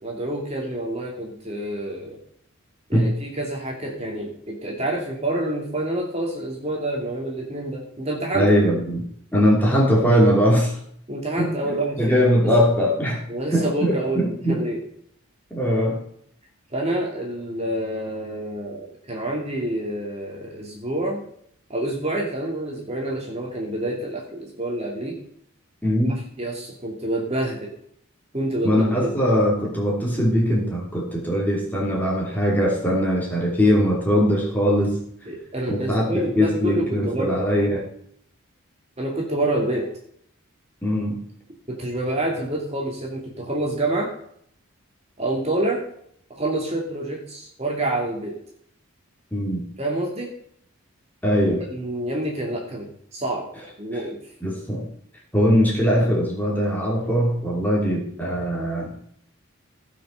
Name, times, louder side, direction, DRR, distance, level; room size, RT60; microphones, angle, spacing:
voice 1, 0.0-2.2 2.9-8.5 11.1-12.5 13.3-14.8 16.7-21.2 21.7-25.2 26.4-27.7 28.3-29.1 35.3-37.4 39.0-39.9 41.7-44.1 45.2-45.8 46.3-48.4 49.8-50.3 51.7-53.5 53.8-54.2, right 1 dB, 30° right, -1 dB, 2.5 m, -27 dB
voice 2, 8.3-9.0 9.3-10.8 11.4-13.2 13.5-14.7 15.5-16.0 25.8-26.2 28.6-35.0 35.7-37.9 40.8-41.2 49.3-49.6 51.2-51.6 53.9-54.0 54.4-54.9 55.3-59.1, equal, 10° left, -3 dB, 3.1 m, -21 dB
16.5 x 6.1 x 5.7 m, 0.66 s
head